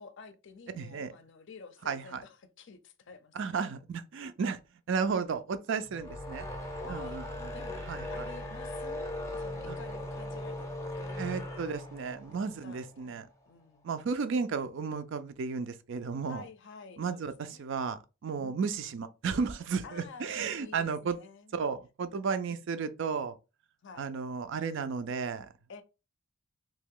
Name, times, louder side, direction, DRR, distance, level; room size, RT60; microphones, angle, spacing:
voice 1, 0.0-3.6 4.3-4.4 6.8-7.8 8.1-12.2 12.5-13.2 13.5-14.0 16.3-17.7 18.4-18.7 19.8-21.6 22.5-22.6 23.8-24.1 25.7-25.8, left 4 dB, 55° left, 0.5 m, -51 dB
voice 2, 0.7-1.1 1.9-2.2 3.3-4.6 4.9-6.5 6.9-7.5 7.9-8.3 9.7-9.8 11.2-13.3 13.8-16.4 17.0-21.2 21.5-23.4 24.0-25.5, right 5 dB, 55° right, 0.4 m, -33 dB
sound 1, 5.9-13.2, left 1 dB, 15° left, 0.6 m, -39 dB
3.0 x 2.7 x 3.6 m
head